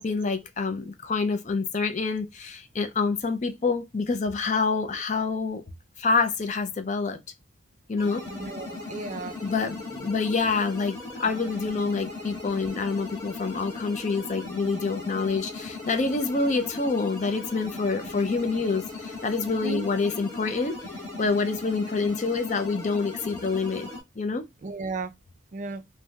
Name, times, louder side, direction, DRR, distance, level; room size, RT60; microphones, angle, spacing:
voice 1, 0.0-5.6 6.0-7.2 7.9-8.2 9.4-20.8 21.2-23.9 24.2-24.4, left 4 dB, 40° left, 0.5 m, -27 dB
sound 1, 8.0-24.0, left 3 dB, 15° left, 1.1 m, -38 dB
voice 2, 8.3-9.4 19.5-19.8 24.6-25.1 25.5-25.8, right 3 dB, 40° right, 0.4 m, -34 dB
3.2 x 2.6 x 2.2 m
head